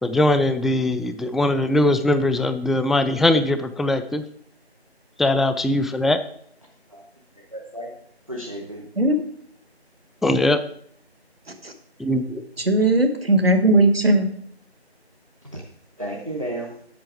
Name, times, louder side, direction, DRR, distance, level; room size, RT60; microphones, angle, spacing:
voice 1, 0.0-4.2 5.2-6.2 10.2-10.6 12.0-12.4, left 1 dB, ahead, 10 dB, 0.3 m, -21 dB
voice 2, 7.4-7.9 8.3-8.9 15.5-15.6 16.0-16.7, right 1 dB, 30° right, 0 dB, 0.8 m, -32 dB
voice 3, 12.6-14.3, right 2 dB, 65° right, 7 dB, 1.1 m, -18 dB
7.5 x 6.9 x 4.8 m, 0.65 s
figure-of-eight pair, 170°, 33 cm